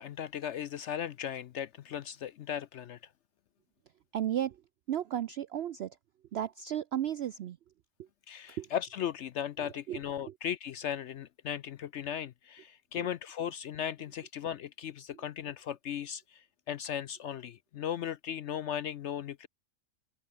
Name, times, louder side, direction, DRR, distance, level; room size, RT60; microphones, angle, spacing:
voice 1, 0.0-3.0 8.3-19.5, left 9 dB, 65° left, 0.7 m, -37 dB
voice 2, 4.1-4.6 4.9-6.0 6.3-7.6 8.6-8.7 9.9-10.0 13.0-13.1, right 11 dB, 70° right, 0.6 m, -33 dB
omnidirectional pair, 1.6 m